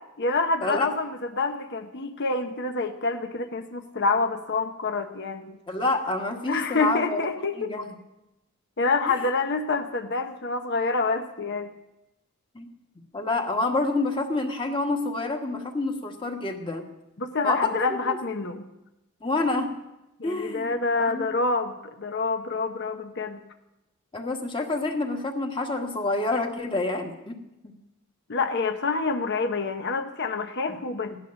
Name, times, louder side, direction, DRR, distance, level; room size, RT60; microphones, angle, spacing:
voice 1, 0.2-1.1 1.3-5.6 6.5-7.7 8.8-11.7 17.2-18.7 20.2-23.4 28.3-31.2, left 3 dB, 55° left, 7 dB, 0.9 m, -27 dB
voice 2, 5.7-7.3 7.5-7.9 12.5-12.7 12.9-16.8 17.4-17.7 18.0-18.2 19.2-19.7 20.2-21.2 24.1-27.7, left 2 dB, 25° left, 3 dB, 1.5 m, -28 dB
16.0 x 11.5 x 6.3 m, 0.94 s
head